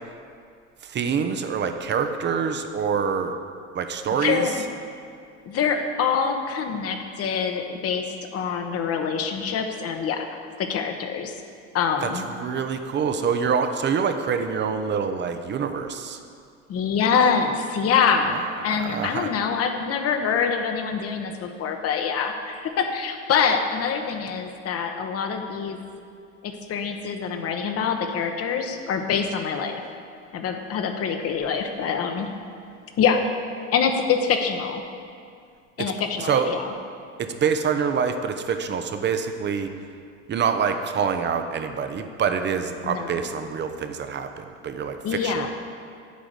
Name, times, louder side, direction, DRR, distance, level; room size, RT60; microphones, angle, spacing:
voice 1, 0.8-3.3 3.7-4.6 12.0-16.2 18.2-19.3 35.8-35.9 36.2-36.5 37.2-39.7 40.3-45.5, right 6 dB, 30° right, 7 dB, 0.7 m, -26 dB
voice 2, 4.2-4.5 5.5-8.1 8.3-10.3 10.6-11.3 11.7-12.2 16.7-18.4 18.6-25.8 26.4-29.8 30.3-32.3 33.0-33.2 33.5-34.8 35.8-36.6 42.8-43.2 45.0-45.5, left 6 dB, 45° left, 5 dB, 1.1 m, -25 dB
8.4 x 5.0 x 7.6 m, 2.3 s
hypercardioid pair, 80°, 35 cm